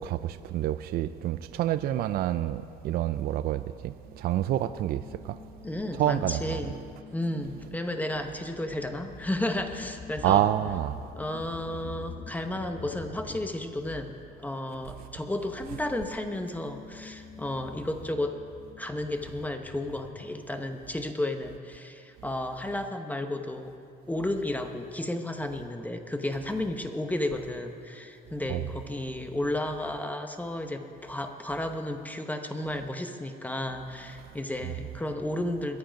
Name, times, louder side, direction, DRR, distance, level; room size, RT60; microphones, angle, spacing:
voice 1, 0.0-5.4 6.0-6.6 10.2-11.0 28.5-28.6, right 12 dB, 65° right, 13 dB, 0.4 m, -28 dB
sound 1, 4.0-14.8 15.1-20.3, left 6 dB, 50° left, 0.9 m, -47 dB
voice 2, 5.6-6.8 7.1-10.4 11.2-14.1 14.4-18.4 18.8-23.7 24.1-35.8, left 1 dB, 10° left, 6 dB, 0.9 m, -33 dB
22.0 x 7.8 x 5.2 m, 2.4 s
cardioid pair, 110°, 17 cm